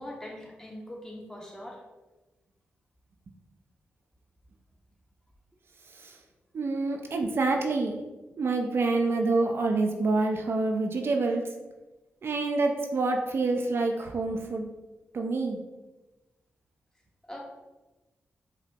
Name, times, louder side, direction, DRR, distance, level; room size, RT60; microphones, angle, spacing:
voice 1, 0.0-1.8 17.2-17.4, left 1 dB, 15° left, -1 dB, 1.0 m, -42 dB
voice 2, 6.5-7.9 8.4-11.4 12.2-14.7 15.1-15.6, right 3 dB, 60° right, 3 dB, 0.4 m, -27 dB
5.1 x 2.1 x 2.7 m, 1.1 s
supercardioid pair, 45°, 5 cm